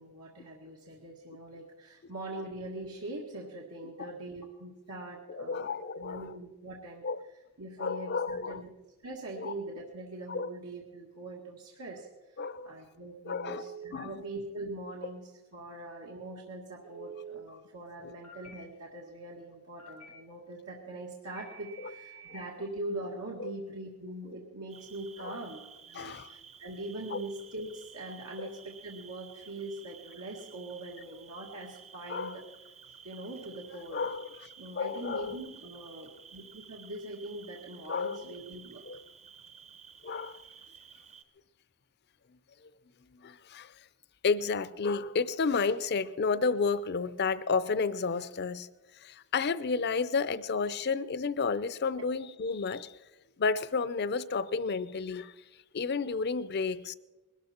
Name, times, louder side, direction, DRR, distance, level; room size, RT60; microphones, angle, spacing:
voice 1, 0.0-7.1 7.6-8.7 9.0-32.4 33.0-34.1 34.6-38.8, right 2 dB, 90° right, -2 dB, 1.9 m, -42 dB
voice 2, 5.3-6.4 7.0-7.2 7.8-8.6 9.4-9.5 10.3-10.5 12.4-12.7 13.3-14.2 18.0-18.1 21.8-21.9 23.4-23.5 25.2-25.4 25.9-26.3 27.1-27.2 28.4-28.5 32.1-32.4 33.9-34.5 34.7-35.3 37.9-38.2 38.9-39.0 40.0-40.4 43.1-43.7 44.2-48.7 48.9-53.0 53.4-55.3 55.7-56.9, left 4 dB, 50° left, 16 dB, 0.5 m, -31 dB
Telephone, 13.3-13.8 16.8-17.3 18.2-18.5 19.8-20.1 21.4-22.4, right 6 dB, 85° left, 1.4 m, -47 dB
Cricket, 24.7-41.2, right 7 dB, 30° right, 0.7 m, -53 dB
21.0 x 13.0 x 4.4 m, 1.1 s
head